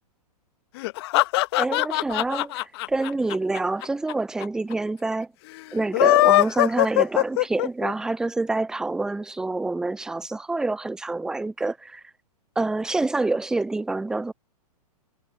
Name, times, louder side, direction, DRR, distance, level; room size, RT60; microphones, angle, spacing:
sound 1, 0.8-4.1 4.4-4.5 4.7-4.8 5.8-7.9, left 20 dB, 40° left, 1.0 m, -20 dB
voice 1, 1.6-5.3 5.7-12.0 12.6-14.3, right 2 dB, 5° right, 0.4 m, -27 dB
figure-of-eight pair, 110°, 20 cm